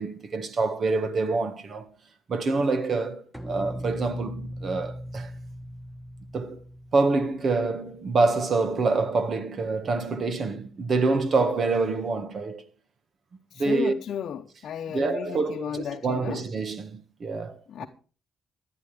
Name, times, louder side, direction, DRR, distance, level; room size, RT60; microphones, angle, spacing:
voice 1, 0.0-1.9 2.3-5.3 6.3-6.6 6.9-12.6 13.6-13.9 14.9-17.9, right 3 dB, 50° right, 1.6 m, -26 dB
sound 1, 3.3-8.6, equal, 5° right, 1.0 m, -39 dB
voice 2, 13.5-16.4 17.7-17.9, left 8 dB, 65° left, 0.8 m, -34 dB
16.5 x 11.0 x 3.4 m
cardioid pair, 90°, 0 cm